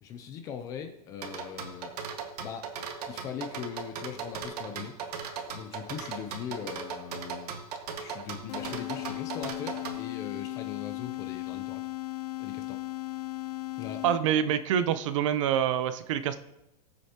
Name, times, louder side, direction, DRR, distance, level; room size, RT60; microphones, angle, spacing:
voice 1, 0.0-1.9 2.4-2.7 3.1-4.9 5.5-7.5 8.0-11.8 12.4-12.8 13.8-14.0, left 8 dB, 15° left, 7 dB, 0.4 m, -40 dB
sound 1, 1.2-10.0, right 6 dB, 80° right, 1.7 m, -37 dB
sound 2, 8.5-14.5, left 19 dB, 75° left, 0.6 m, -37 dB
voice 2, 14.0-16.4, right 9 dB, 50° right, 12 dB, 0.7 m, -26 dB
18.5 x 7.8 x 2.9 m, 0.90 s
supercardioid pair, 175°, 20 cm